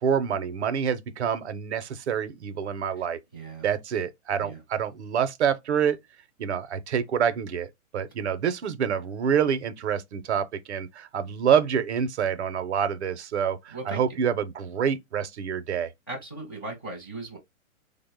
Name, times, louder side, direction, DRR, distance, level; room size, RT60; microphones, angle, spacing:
voice 1, 0.0-3.2 3.6-6.0 6.4-15.9, right 7 dB, 55° right, 0.5 m, -27 dB
voice 2, 3.3-3.6 4.4-4.6 13.7-14.0 16.1-17.4, right 3 dB, 20° left, 0.4 m, -37 dB
3.4 x 2.0 x 3.5 m
hypercardioid pair, 170°, 41 cm